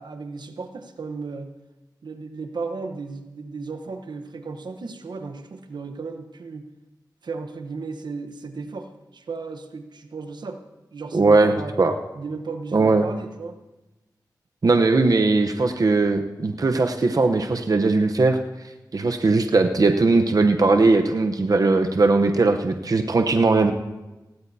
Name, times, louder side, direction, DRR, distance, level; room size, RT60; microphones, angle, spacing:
voice 1, 0.0-1.5 2.0-6.6 7.2-10.6 10.9-11.7 12.1-13.6, right 4 dB, 80° right, 6 dB, 1.0 m, -35 dB
voice 2, 11.1-11.9 12.7-13.1 14.6-18.4 18.9-23.7, right 3 dB, 55° right, 5 dB, 0.9 m, -19 dB
17.0 x 17.0 x 2.8 m, 1.1 s
cardioid pair, 50°, 7 cm